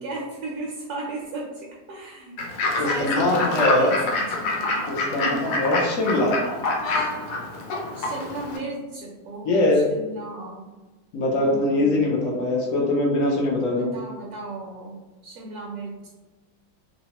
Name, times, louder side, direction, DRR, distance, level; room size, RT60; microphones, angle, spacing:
voice 1, 0.0-2.4 2.7-4.8 5.1-5.5 7.9-10.7 11.2-12.1 13.7-15.0 15.2-16.1, right 2 dB, 70° right, -3 dB, 1.0 m, -35 dB
Fowl / Bird, 2.4-8.6, left 2 dB, 90° left, 1.2 m, -26 dB
voice 2, 2.8-3.9 4.9-6.4 9.5-9.9 11.1-13.9, left 2 dB, 65° left, -3 dB, 0.8 m, -22 dB
2.9 x 2.0 x 2.8 m, 1.2 s
omnidirectional pair, 1.7 m